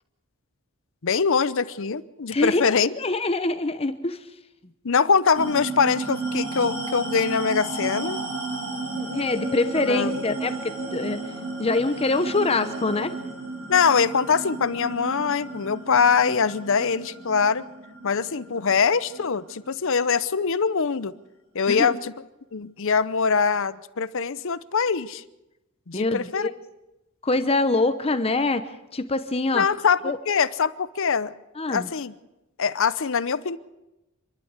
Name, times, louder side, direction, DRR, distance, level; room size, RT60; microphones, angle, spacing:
voice 1, 1.0-2.9 4.8-8.2 9.9-10.2 13.7-17.7 18.0-21.1 21.5-22.1 22.5-25.2 25.9-26.5 29.5-30.0 30.3-31.3 31.7-32.1 32.6-33.6, left 5 dB, 60° left, 16 dB, 0.7 m, -23 dB
voice 2, 2.3-4.2 8.9-11.2 11.6-13.1 21.7-22.0 25.9-26.5 27.2-28.6 28.9-29.7 30.0-30.2 31.6-31.9, left 2 dB, 25° left, 10 dB, 0.9 m, -24 dB
sound 1, 5.4-20.2, right 3 dB, 60° right, 6.1 m, -33 dB
27.0 x 12.0 x 8.1 m, 0.98 s
head